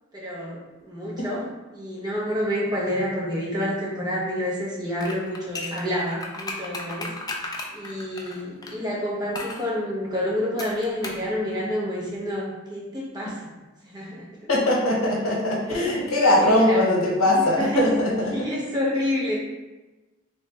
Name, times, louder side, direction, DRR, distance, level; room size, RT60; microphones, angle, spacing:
voice 1, 0.1-7.1 7.7-13.4 13.8-14.3 15.6-16.9 17.3-17.9 18.3-19.4, left 1 dB, 20° right, -5 dB, 0.8 m, -28 dB
sound 1, 5.0-8.8 9.3-9.6 10.6-11.3 11.5-11.6, left 2 dB, 20° left, 0.4 m, -35 dB
voice 2, 14.5-18.3, left 1 dB, 75° left, -2 dB, 0.9 m, -21 dB
3.2 x 3.2 x 3.2 m, 1.1 s
head